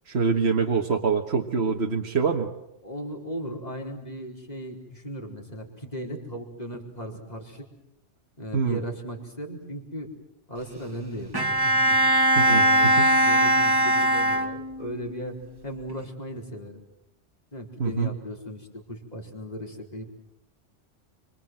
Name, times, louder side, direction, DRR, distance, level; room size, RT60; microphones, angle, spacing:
voice 1, 0.1-2.5 8.5-8.8 12.4-13.1 17.8-18.1, right 5 dB, 65° right, 2 dB, 1.8 m, -25 dB
voice 2, 2.8-7.6 8.4-10.1 10.5-12.0 12.4-15.4 15.6-16.8 17.5-20.0, equal, 35° left, 1 dB, 4.7 m, -37 dB
Bowed string instrument, 11.3-15.0, right 1 dB, 20° right, 2.2 m, -20 dB
27.5 x 26.0 x 7.7 m, 0.82 s
omnidirectional pair, 1.2 m